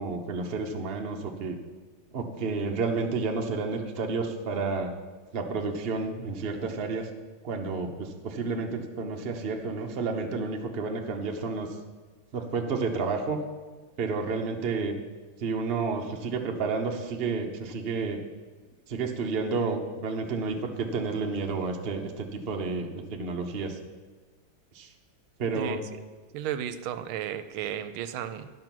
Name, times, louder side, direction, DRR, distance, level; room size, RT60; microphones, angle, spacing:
voice 1, 0.0-1.6 2.1-4.9 5.3-7.1 7.4-11.8 12.3-13.4 14.0-14.9 15.4-18.2 18.9-23.8 24.7-24.9 25.4-25.8, right 4 dB, 45° right, 3 dB, 0.7 m, -30 dB
voice 2, 25.5-26.0 26.3-28.5, right 10 dB, 80° right, 11 dB, 1.4 m, -34 dB
11.0 x 6.2 x 6.0 m, 1.4 s
omnidirectional pair, 2.3 m